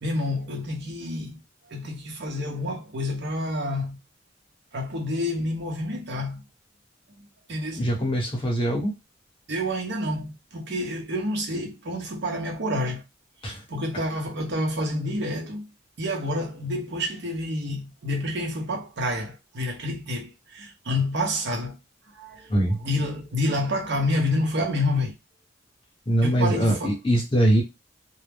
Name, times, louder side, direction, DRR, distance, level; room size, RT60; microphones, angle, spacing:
voice 1, 0.0-1.4 1.7-4.0 4.7-6.4 7.2-7.9 9.5-13.0 13.7-15.7 16.0-21.8 22.1-25.1 26.2-27.0, left 1 dB, 60° right, 0.8 m, -28 dB
voice 2, 7.8-8.9 13.4-13.5 22.5-22.7 26.1-27.6, right 1 dB, 25° left, 0.9 m, -22 dB
2.2 x 2.0 x 3.4 m
head